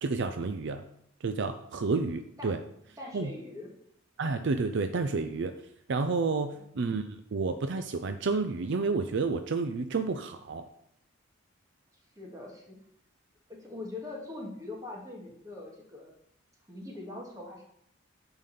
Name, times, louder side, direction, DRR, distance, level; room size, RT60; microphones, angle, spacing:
voice 1, 0.0-0.8 1.2-2.6 3.1-3.3 4.2-5.5 5.9-10.7, right 4 dB, 65° right, 8 dB, 0.5 m, -30 dB
voice 2, 3.0-3.7 6.3-6.7 12.2-12.8 13.5-16.1 16.7-17.6, left 2 dB, 20° right, -1 dB, 2.0 m, -42 dB
9.1 x 4.0 x 6.7 m, 0.73 s
head